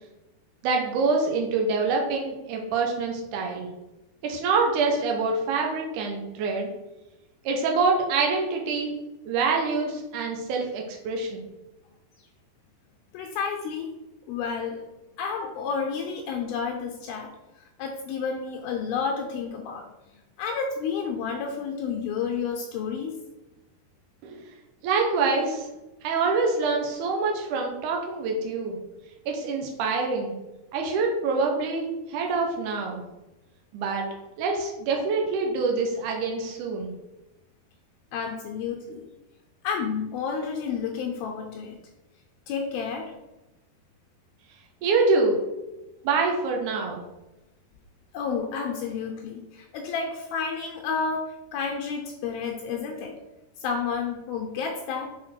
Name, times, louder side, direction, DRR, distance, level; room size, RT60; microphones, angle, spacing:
voice 1, 0.6-3.7 4.2-6.7 7.5-9.0 9.3-11.4 24.2-24.4 24.8-25.7 26.0-28.8 29.3-30.3 30.7-33.0 33.7-34.1 34.4-36.9 44.8-45.4 46.0-47.0, right 4 dB, 85° right, 1 dB, 1.7 m, -25 dB
voice 2, 13.1-13.9 14.3-14.8 15.2-17.3 17.8-19.9 20.4-23.1 30.8-30.9 38.1-39.1 39.6-41.8 42.5-43.1 48.1-53.2 53.6-55.1, left 6 dB, 80° left, 2 dB, 2.3 m, -30 dB
6.5 x 4.2 x 4.3 m, 1.0 s
omnidirectional pair, 4.7 m